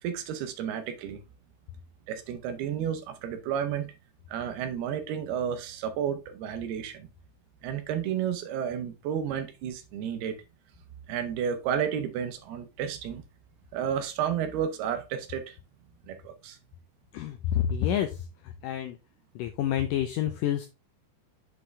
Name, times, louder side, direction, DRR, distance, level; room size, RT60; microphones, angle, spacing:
voice 1, 0.0-1.2 2.1-3.9 4.3-7.1 7.6-10.4 11.1-13.2 13.7-15.6 16.1-16.6, right 8 dB, 85° right, 3.0 m, -32 dB
voice 2, 17.1-18.2 18.4-19.0 19.4-20.7, left 10 dB, 85° left, 1.9 m, -28 dB
7.7 x 4.8 x 3.2 m
omnidirectional pair, 4.5 m